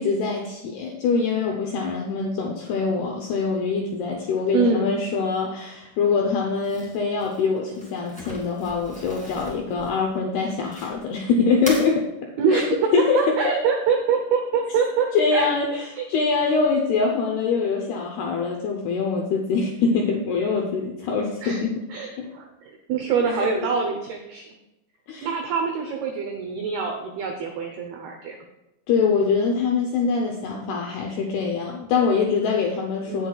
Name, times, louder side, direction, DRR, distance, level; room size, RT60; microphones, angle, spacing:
voice 1, 0.0-12.1 12.5-12.6 12.9-13.6 15.1-21.8 22.2-22.3 23.2-23.7 25.1-25.3 28.9-33.3, left 5 dB, 80° left, 1 dB, 2.3 m, -24 dB
voice 2, 4.5-4.9 12.4-12.7 13.1-16.1 21.4-21.6 21.9-24.5 25.2-28.4 33.1-33.3, right 5 dB, 80° right, 3 dB, 2.3 m, -25 dB
Crumpling crinkling, 6.6-11.2 11.5-11.9, equal, 5° left, 0.9 m, -38 dB
17.5 x 8.0 x 2.4 m, 0.96 s
omnidirectional pair, 5.7 m